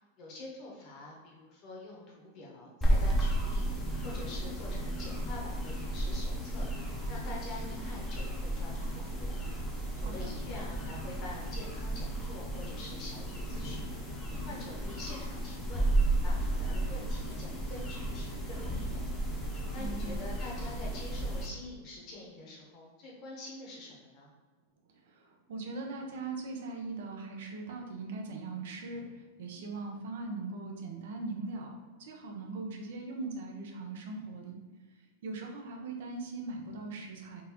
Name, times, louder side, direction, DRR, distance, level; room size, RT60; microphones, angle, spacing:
voice 1, 0.2-9.4 10.0-14.0 14.5-15.8 16.2-19.0 19.7-24.3, left 2 dB, 35° left, -2 dB, 0.9 m, -46 dB
sound 1, 2.8-21.5, right 1 dB, 10° left, 0.6 m, -33 dB
voice 2, 9.9-10.3 19.8-20.3 25.1-31.7 32.0-34.6 35.2-37.4, right 3 dB, 70° right, 2 dB, 0.6 m, -40 dB
3.8 x 2.5 x 2.9 m, 1.3 s
supercardioid pair, 155°, 0 cm